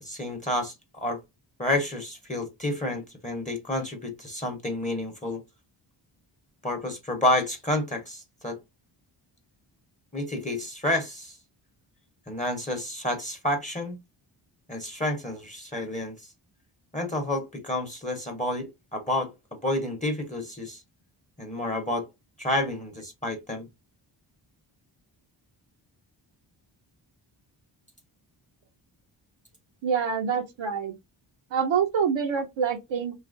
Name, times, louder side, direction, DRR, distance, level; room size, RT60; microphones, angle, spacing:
voice 1, 0.0-1.2 1.6-5.4 6.6-8.6 10.1-11.4 12.3-14.0 14.7-16.2 16.9-19.3 19.6-20.8 21.4-22.1 22.4-23.7, left 1 dB, 15° left, 0.8 m, -29 dB
voice 2, 29.8-30.9 31.5-33.1, right 7 dB, 65° right, 0.7 m, -26 dB
2.8 x 2.4 x 2.5 m
cardioid pair, 60°, 49 cm